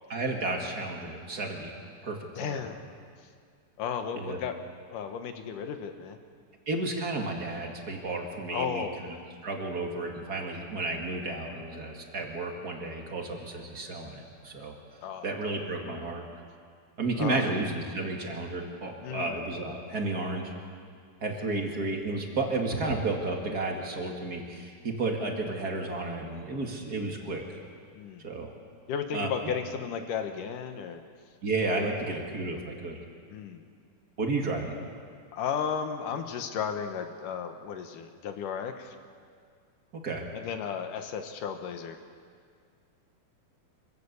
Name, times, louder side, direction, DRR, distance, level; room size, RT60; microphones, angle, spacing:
voice 1, 0.1-1.7 2.0-2.6 4.1-4.4 6.7-9.1 9.4-14.7 15.2-16.2 17.0-20.5 21.2-27.4 28.2-28.5 29.1-29.6 31.4-33.0 34.2-34.7 40.0-40.2, right 2 dB, 30° right, 1 dB, 2.1 m, -32 dB
voice 2, 2.4-2.8 3.8-4.6 4.9-6.2 8.5-9.2 15.0-15.3 17.2-17.5 19.0-19.4 21.4-21.7 27.9-28.2 28.9-31.0 31.8-32.1 33.3-33.7 35.3-39.0 40.3-42.0, left 7 dB, 70° left, 6 dB, 2.6 m, -34 dB
25.5 x 15.5 x 8.3 m, 2.1 s
omnidirectional pair, 4.2 m